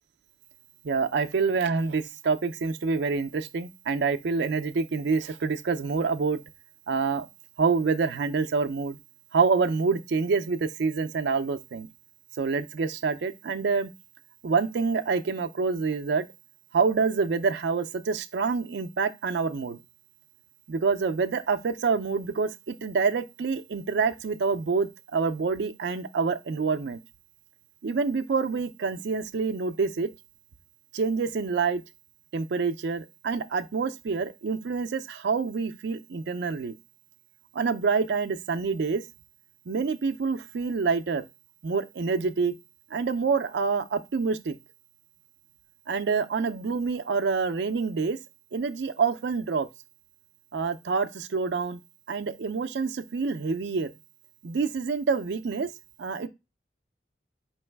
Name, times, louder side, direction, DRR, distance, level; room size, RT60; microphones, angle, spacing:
voice 1, 0.8-6.4 6.9-7.3 7.6-9.0 9.3-11.9 12.4-13.9 14.4-16.3 16.7-19.8 20.7-27.0 27.8-30.1 30.9-31.8 32.3-36.7 37.5-39.0 39.7-41.3 41.6-42.5 42.9-44.6 45.9-48.2 48.5-49.7 50.5-51.8 52.1-53.9 54.4-55.7 56.0-56.3, right 5 dB, 75° right, 0.4 m, -27 dB
4.6 x 3.0 x 3.3 m
head